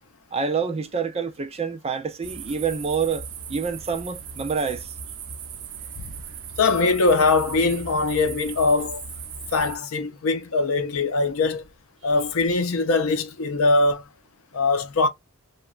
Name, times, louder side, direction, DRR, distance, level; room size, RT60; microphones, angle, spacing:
voice 1, 0.3-4.9 12.5-12.6, right 5 dB, 25° right, 0.4 m, -27 dB
sound 1, 2.2-9.8, right 6 dB, 75° right, 0.6 m, -38 dB
voice 2, 6.6-9.0 9.5-11.7 12.0-14.0 14.5-15.1, left 3 dB, 70° left, 0.6 m, -22 dB
2.9 x 2.2 x 2.3 m
head